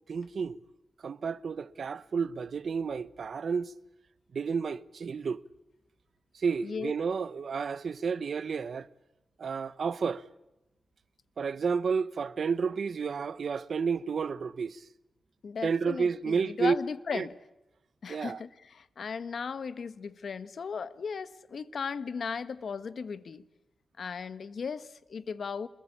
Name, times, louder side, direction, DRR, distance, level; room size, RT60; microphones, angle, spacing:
voice 1, 0.1-0.6 1.0-3.7 4.3-5.4 6.3-8.9 9.4-10.2 11.4-14.8 15.6-16.8 17.1-17.3 18.1-18.4, right 5 dB, 65° right, 0.9 m, -31 dB
voice 2, 15.4-17.4 18.0-23.5 24.0-25.7, left 5 dB, 65° left, 1.3 m, -36 dB
27.0 x 22.0 x 8.6 m
wide cardioid pair, 100°, 0 cm